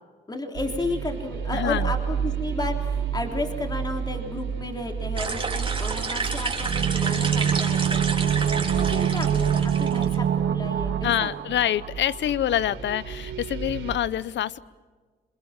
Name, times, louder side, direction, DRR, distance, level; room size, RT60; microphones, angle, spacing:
voice 1, 0.3-11.3, left 2 dB, 20° left, 3 dB, 3.5 m, -33 dB
sound 1, 0.5-14.0, right 7 dB, 85° right, 3.9 m, -32 dB
voice 2, 1.5-1.9 11.0-14.6, left 11 dB, 65° left, 19 dB, 0.8 m, -26 dB
sound 2, 5.2-10.2, right 4 dB, 25° right, 3.7 m, -30 dB
sound 3, 6.6-12.3 12.6-12.7, right 9 dB, 65° right, 1.8 m, -25 dB
27.5 x 22.0 x 7.5 m, 1.4 s
cardioid pair, 90°, 20 cm